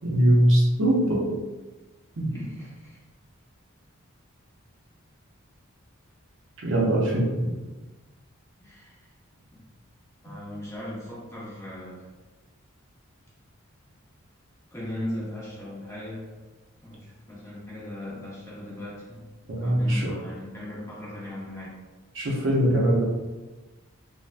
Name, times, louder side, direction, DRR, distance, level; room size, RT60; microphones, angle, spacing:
voice 1, 0.0-1.3 2.2-2.3 6.6-7.3 10.3-10.4 19.5-20.1 22.1-23.0, right 1 dB, 60° right, -3 dB, 0.6 m, -22 dB
voice 2, 2.2-3.0 8.6-9.1 9.5-9.6 10.2-12.1 14.7-16.3 16.8-21.8, left 1 dB, 15° left, -7 dB, 0.7 m, -38 dB
3.2 x 2.1 x 2.4 m, 1.2 s
head